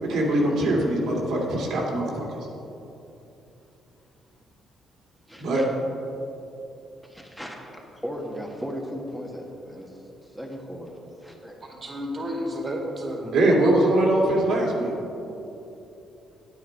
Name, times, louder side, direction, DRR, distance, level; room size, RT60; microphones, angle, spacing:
voice 1, 0.0-2.3 5.4-5.6 13.3-14.9, right 1 dB, 75° right, -3 dB, 2.3 m, -22 dB
voice 2, 5.3-5.6 7.0-11.6 15.2-15.3, equal, ahead, -1 dB, 1.5 m, -37 dB
voice 3, 11.6-13.3, equal, 35° right, 1 dB, 2.0 m, -31 dB
9.5 x 9.4 x 4.7 m, 2.9 s
cardioid pair, 90°, 0 cm